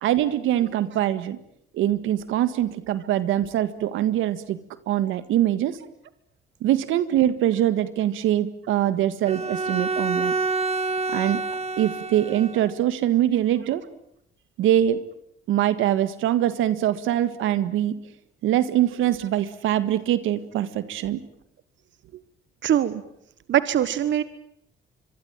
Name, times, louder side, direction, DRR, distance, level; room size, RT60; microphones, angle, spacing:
voice 1, 0.0-1.4 1.7-4.6 4.9-5.8 6.6-10.3 11.1-11.4 11.8-13.8 14.6-15.0 15.5-18.0 18.4-21.2, right 12 dB, 90° right, 13 dB, 1.8 m, -23 dB
Bowed string instrument, 9.3-12.8, right 3 dB, 30° right, 2.5 m, -27 dB
voice 2, 22.6-23.0 23.5-24.2, right 10 dB, 70° right, 14 dB, 1.4 m, -22 dB
25.5 x 23.0 x 9.0 m, 0.74 s
cardioid pair, 90°, 20 cm